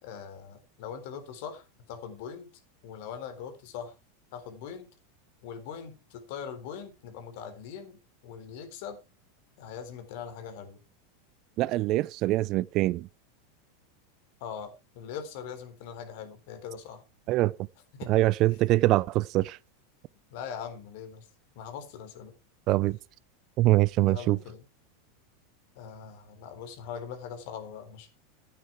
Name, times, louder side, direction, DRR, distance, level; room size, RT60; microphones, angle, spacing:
voice 1, 0.0-2.5 2.8-3.9 4.3-4.9 5.4-8.0 8.2-9.0 9.6-10.8 14.4-17.0 17.9-18.1 20.3-21.3 21.6-22.3 24.1-24.6 25.8-28.1, left 7 dB, 65° left, 3.7 m, -41 dB
voice 2, 11.6-13.1 17.3-17.5 18.1-19.6 22.7-23.0 23.6-24.4, right 17 dB, 50° right, 0.5 m, -24 dB
11.5 x 9.3 x 4.6 m
hypercardioid pair, 100°, 0 cm